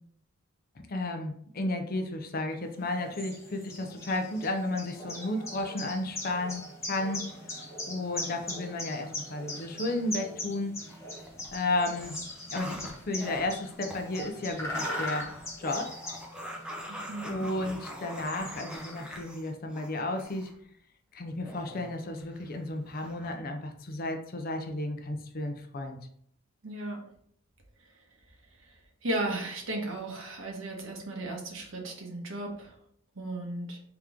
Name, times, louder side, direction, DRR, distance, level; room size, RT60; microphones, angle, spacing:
voice 1, 0.9-7.3 7.9-10.8 11.5-12.2 12.5-15.3 15.6-15.9 17.2-20.5 21.1-26.0, left 2 dB, 45° left, 5 dB, 0.5 m, -33 dB
sound 1, 2.7-19.3, left 1 dB, 15° left, 0.9 m, -40 dB
sound 2, 10.9-11.5 11.8-20.5 21.4-22.5 22.9-23.3, equal, 5° right, 0.5 m, -43 dB
voice 2, 16.9-17.4 26.6-27.0 28.6-28.7 29.0-32.7 33.1-33.8, right 1 dB, 65° right, 1 dB, 1.1 m, -35 dB
3.6 x 3.0 x 3.5 m, 0.64 s
head